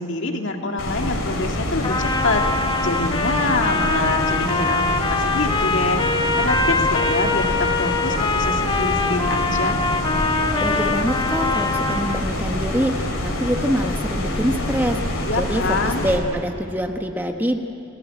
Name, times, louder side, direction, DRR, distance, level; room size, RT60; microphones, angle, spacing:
voice 1, 0.0-6.0 6.4-9.8 15.3-16.1, left 2 dB, 55° left, 3 dB, 2.1 m, -25 dB
sound 1, 0.8-16.2, left 1 dB, 75° left, 4.8 m, -26 dB
Trumpet, 1.8-12.2, left 3 dB, 20° left, 1.1 m, -23 dB
voice 2, 10.6-17.6, equal, 10° right, 4 dB, 1.0 m, -25 dB
29.0 x 18.5 x 9.0 m, 2.8 s
head